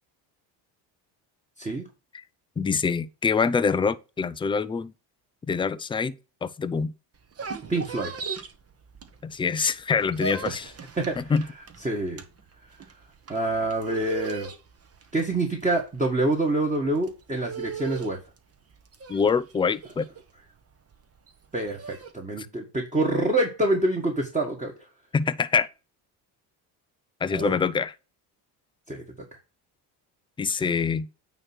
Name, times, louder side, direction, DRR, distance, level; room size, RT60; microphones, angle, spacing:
voice 1, 2.6-4.9 5.5-6.1 6.4-6.9 9.2-10.7 11.2-11.4 19.1-20.1 22.4-22.5 25.1-25.7 27.2-28.0 30.4-31.1, left 5 dB, 15° left, 0.3 m, -25 dB
sound 1, 7.1-9.5 9.8-22.1, right 5 dB, 30° right, 1.1 m, -38 dB
voice 2, 7.7-8.1 10.5-10.6 11.0-11.1 11.8-12.2 13.3-14.5 15.1-18.2 21.5-24.7 27.3-27.6 28.9-29.0, right 2 dB, 15° right, 1.8 m, -26 dB
9.1 x 3.1 x 6.1 m
cardioid pair, 100°, 45 cm